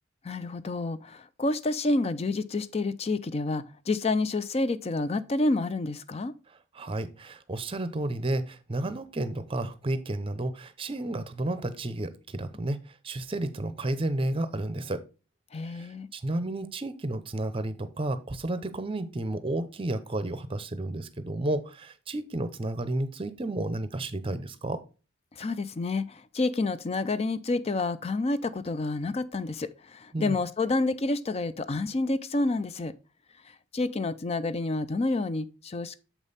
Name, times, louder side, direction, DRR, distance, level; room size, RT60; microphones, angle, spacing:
voice 1, 0.2-6.3 15.5-16.1 25.4-32.9 33.7-36.0, left 2 dB, 30° left, 0.4 m, -29 dB
voice 2, 6.7-12.8 13.0-15.0 15.7-24.8 30.1-30.4, right 1 dB, 25° right, 0.6 m, -32 dB
7.2 x 5.4 x 4.0 m
head